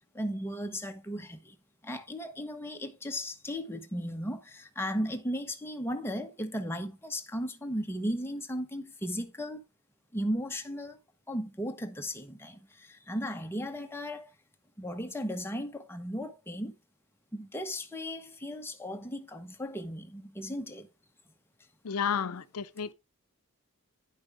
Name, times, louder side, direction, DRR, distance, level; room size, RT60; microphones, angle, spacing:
voice 1, 0.1-1.5 1.8-9.6 10.1-11.0 11.3-14.3 14.8-16.7 17.3-20.9, equal, 10° left, 1.0 m, -36 dB
voice 2, 21.8-22.9, left 7 dB, 75° left, 0.6 m, -31 dB
10.0 x 5.3 x 3.5 m
head